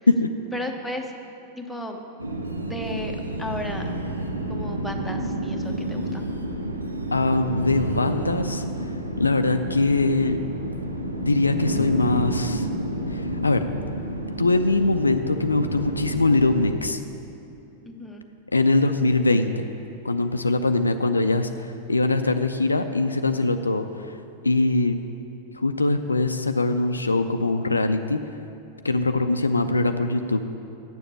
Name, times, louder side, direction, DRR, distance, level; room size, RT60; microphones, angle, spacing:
voice 1, 0.5-1.1 1.6-2.0 2.7-3.1 3.4-3.8 4.5-6.3 17.8-18.2, left 1 dB, ahead, 1 dB, 0.9 m, -34 dB
sound 1, 2.2-16.8, right 1 dB, 80° right, 0.7 m, -30 dB
voice 2, 7.1-8.6 9.2-10.4 11.2-12.7 13.1-13.6 14.4-17.0 18.5-19.7 20.0-23.9 24.4-25.0 25.5-28.2 28.8-30.4, left 2 dB, 80° left, 8 dB, 0.4 m, -22 dB
7.8 x 7.0 x 8.4 m, 2.7 s
figure-of-eight pair, 90°, 0 cm